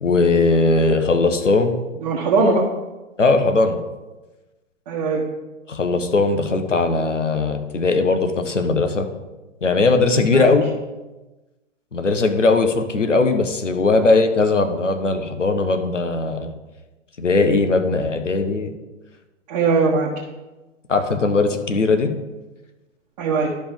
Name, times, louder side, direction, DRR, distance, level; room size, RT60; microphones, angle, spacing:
voice 1, 0.0-1.8 3.2-3.8 5.7-9.1 9.6-10.7 11.9-16.5 17.2-18.7 20.9-22.1, left 3 dB, 75° left, 7 dB, 1.1 m, -19 dB
voice 2, 2.0-2.7 4.9-5.2 10.3-10.5 19.5-20.1 23.2-23.5, right 4 dB, 35° right, -3 dB, 1.2 m, -19 dB
11.5 x 5.3 x 3.7 m, 1.1 s
figure-of-eight pair, 115°, 37 cm